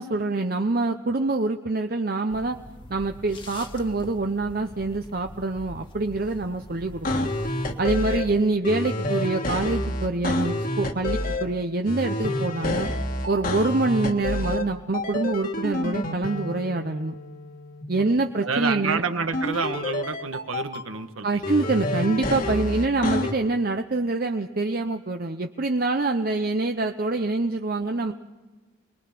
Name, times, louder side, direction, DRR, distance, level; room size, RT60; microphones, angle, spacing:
voice 1, 0.0-2.6 2.9-7.3 7.8-12.9 13.3-17.2 17.9-19.0 21.2-28.1, right 3 dB, 45° right, 6 dB, 0.7 m, -25 dB
sound 1, 2.3-8.5, left 1 dB, 25° left, 1.6 m, -44 dB
sound 2, 7.0-8.2 8.6-11.4 11.8-14.6 14.9-17.8 19.3-20.8 21.4-23.3, left 1 dB, 40° left, 1.7 m, -28 dB
voice 2, 18.4-21.5, right 4 dB, 90° right, 7 dB, 1.5 m, -29 dB
27.0 x 20.5 x 6.0 m, 1.3 s
head